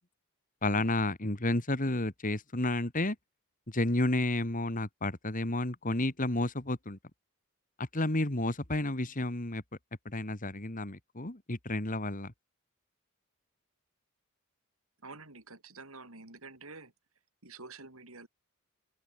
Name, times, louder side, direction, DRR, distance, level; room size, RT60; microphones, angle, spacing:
voice 1, 0.6-3.2 3.7-7.0 7.8-9.6 10.1-12.3, left 1 dB, 40° left, 2.3 m, -31 dB
voice 2, 15.0-16.9 17.4-18.3, right 3 dB, 70° right, 5.7 m, -48 dB
open air
head